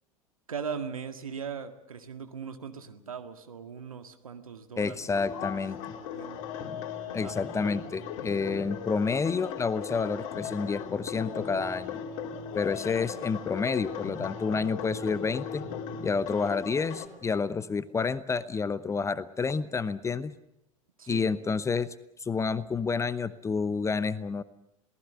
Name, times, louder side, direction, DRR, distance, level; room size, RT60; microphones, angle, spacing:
voice 1, 0.5-5.0 5.4-5.5 5.8-6.4 7.2-7.3 21.0-21.2, right 6 dB, 75° right, 7 dB, 1.9 m, -39 dB
voice 2, 4.8-5.8 7.1-12.0 12.5-15.6 16.0-20.3 21.1-21.9 22.2-24.4, left 5 dB, 15° left, 16 dB, 0.8 m, -29 dB
sound 1, 5.1-17.1, left 7 dB, 50° left, 3.9 m, -38 dB
27.5 x 18.5 x 6.8 m, 0.84 s
figure-of-eight pair, 80°, 18 cm